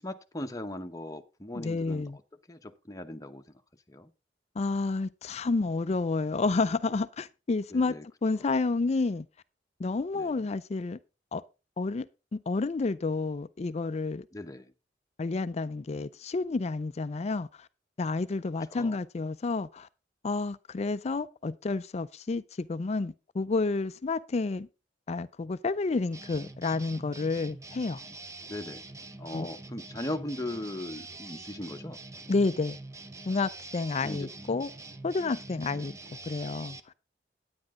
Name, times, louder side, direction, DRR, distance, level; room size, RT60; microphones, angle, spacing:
voice 1, 0.0-2.0 2.5-3.6 3.9-4.1 7.7-8.0 8.4-8.5 10.1-10.5 14.3-14.7 18.7-19.0 28.5-28.8 29.2-32.0 34.0-34.3 35.7-35.9, left 1 dB, 20° left, 0.9 m, -39 dB
voice 2, 1.5-2.2 4.6-8.0 8.2-9.3 9.8-11.0 11.3-11.4 11.8-12.1 12.3-14.3 15.2-17.7 18.0-19.9 20.2-24.7 25.1-28.0 29.3-29.5 32.3-32.8 33.3-34.7 35.0-35.9 36.2-36.8, left 3 dB, 40° left, 0.4 m, -30 dB
sound 1, 26.1-36.8, right 2 dB, 20° right, 0.7 m, -45 dB
10.0 x 9.6 x 3.7 m
head